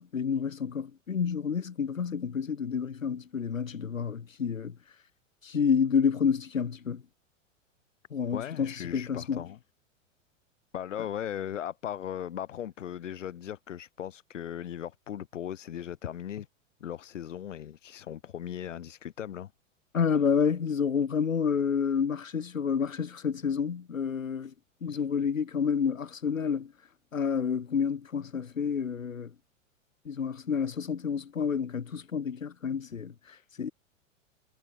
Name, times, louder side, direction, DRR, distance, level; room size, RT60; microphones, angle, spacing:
voice 1, 0.0-4.8 5.4-7.0 8.1-9.4 19.9-24.5 24.8-26.7 27.1-29.3 30.0-33.7, left 6 dB, 85° left, 1.0 m, -29 dB
voice 2, 8.3-9.6 10.7-16.5 16.8-19.5, left 10 dB, 65° left, 3.0 m, -38 dB
figure-of-eight pair, 95°, 39 cm